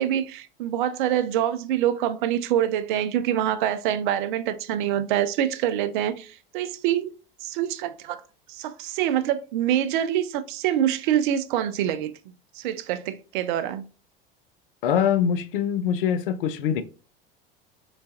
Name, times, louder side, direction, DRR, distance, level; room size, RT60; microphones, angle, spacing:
voice 1, 0.0-6.3 6.5-7.1 7.4-8.2 8.6-12.1 12.6-13.8, right 11 dB, 60° right, 0.4 m, -25 dB
voice 2, 14.8-16.8, left 8 dB, 70° left, 0.5 m, -23 dB
3.3 x 3.0 x 2.6 m
figure-of-eight pair, 80°, 29 cm